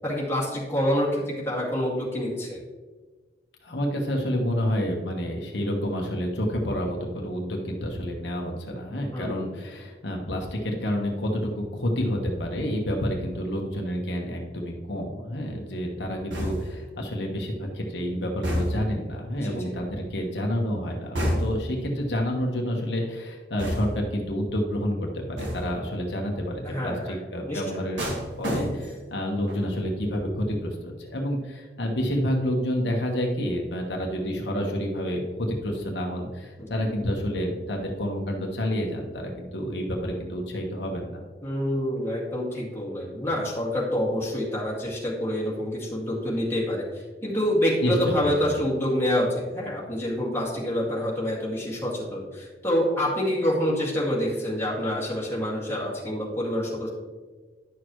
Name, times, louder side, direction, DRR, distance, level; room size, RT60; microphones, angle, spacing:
voice 1, 0.0-2.6 9.1-9.5 19.4-19.7 26.6-27.2 27.5-27.8 36.6-36.9 41.4-56.9, equal, 15° left, -5 dB, 2.1 m, -27 dB
voice 2, 3.6-28.0 28.4-41.2 47.8-48.6, equal, 70° left, 0 dB, 1.2 m, -29 dB
sound 1, 16.3-16.9 18.4-19.0 21.1-21.8 23.6-24.1 25.4-25.8 28.0-29.1 29.5-29.8, equal, 90° right, 1.8 m, -29 dB
10.5 x 6.4 x 3.1 m, 1.4 s
head